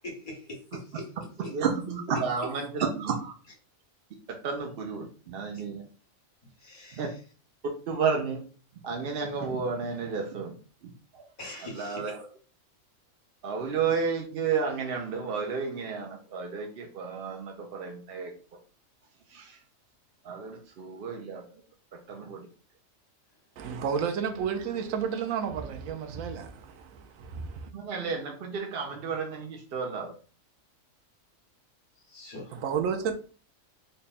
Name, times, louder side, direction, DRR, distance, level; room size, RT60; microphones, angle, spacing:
voice 1, 0.0-1.5 2.1-2.5 5.5-5.6 6.6-7.2 11.4-12.1 32.0-32.6, left 2 dB, 35° left, 1.4 m, -42 dB
voice 2, 1.5-3.3 4.3-5.8 6.9-7.1 7.9-8.4 8.8-10.5 10.8-11.2 11.7-12.2 13.4-18.3 19.3-19.6 20.2-21.4 22.1-22.5 27.7-30.2, right 5 dB, 60° right, 0.6 m, -32 dB
voice 3, 23.6-27.7 32.5-33.1, right 7 dB, 75° right, 1.0 m, -31 dB
3.5 x 2.2 x 4.0 m
omnidirectional pair, 1.4 m